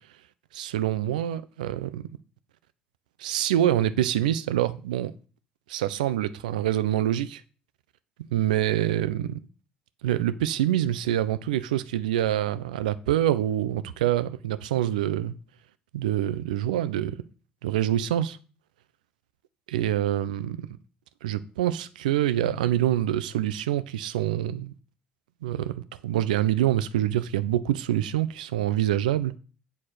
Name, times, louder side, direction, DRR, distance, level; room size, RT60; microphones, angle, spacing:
voice 1, 0.5-2.2 3.2-5.1 5.7-7.4 8.2-9.4 10.0-15.3 15.9-17.2 17.6-18.4 19.7-20.7 21.2-24.7 25.4-29.3, right 12 dB, 80° right, 0.5 m, -26 dB
7.9 x 4.3 x 6.5 m
hypercardioid pair, 55°, 4 cm